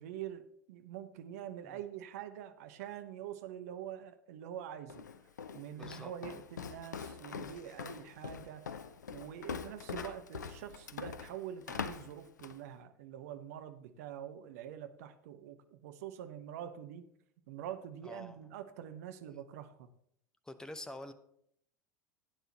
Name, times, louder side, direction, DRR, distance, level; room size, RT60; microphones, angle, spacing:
voice 1, 0.0-5.1 5.5-8.7 9.1-17.0 17.5-19.9, right 10 dB, 55° right, 9 dB, 1.0 m, -45 dB
Walk footsteps, 4.9-12.6, left 6 dB, 75° left, 0.6 m, -43 dB
voice 2, 5.7-6.1 18.0-18.4 20.4-21.1, left 1 dB, 5° left, 11 dB, 0.9 m, -46 dB
16.0 x 9.3 x 3.0 m, 0.70 s
figure-of-eight pair, 80°, 10 cm